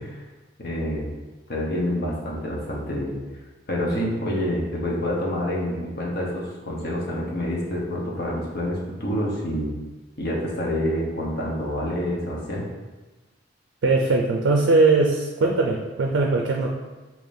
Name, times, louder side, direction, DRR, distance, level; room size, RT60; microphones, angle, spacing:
voice 1, 0.6-1.1 1.5-3.1 3.7-9.7 10.2-12.6, equal, 55° left, -3 dB, 0.9 m, -27 dB
voice 2, 13.8-16.7, right 3 dB, 75° right, 1 dB, 0.4 m, -20 dB
5.0 x 2.8 x 2.6 m, 1.2 s
head